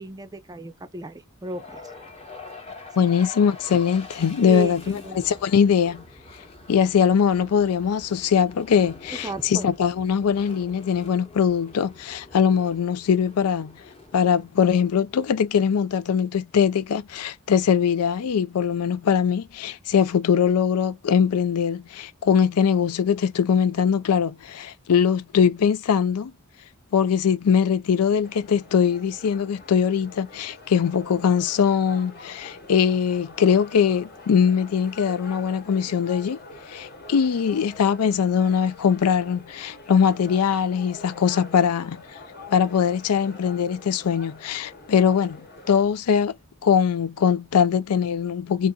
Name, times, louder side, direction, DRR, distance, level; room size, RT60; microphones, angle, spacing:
voice 1, 0.0-1.8 3.0-3.1 4.4-5.2 9.1-9.7, right 3 dB, 15° right, 0.5 m, -34 dB
sound 1, 1.4-15.6, left 3 dB, 25° left, 1.0 m, -45 dB
voice 2, 3.0-6.0 6.7-13.7 14.1-26.3 26.9-36.4 36.7-42.0 42.5-45.4 45.7-46.3 46.6-48.7, left 7 dB, 90° left, 0.4 m, -21 dB
sound 2, 28.2-45.8, left 3 dB, 45° left, 1.1 m, -45 dB
4.0 x 2.5 x 2.2 m
head